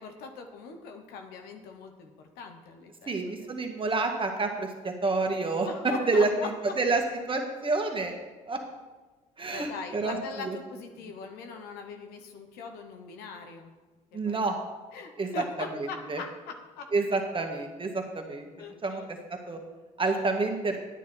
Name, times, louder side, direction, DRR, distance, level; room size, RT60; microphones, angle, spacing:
voice 1, 0.0-3.5 5.7-6.8 9.5-13.7 14.1-14.4 14.9-16.9 18.6-19.0 20.1-20.2, left 5 dB, 70° left, 5 dB, 1.1 m, -41 dB
voice 2, 3.1-5.7 6.1-6.3 6.8-7.0 7.3-8.2 8.5-8.6 9.4-10.2 10.4-10.6 14.1-14.6 15.2-15.3 15.7-16.2 16.9-18.5 18.8-19.0 19.5-19.6 20.0-20.8, right 3 dB, 30° right, 3 dB, 2.0 m, -28 dB
10.0 x 9.4 x 4.5 m, 1.3 s
hypercardioid pair, 50°, 17 cm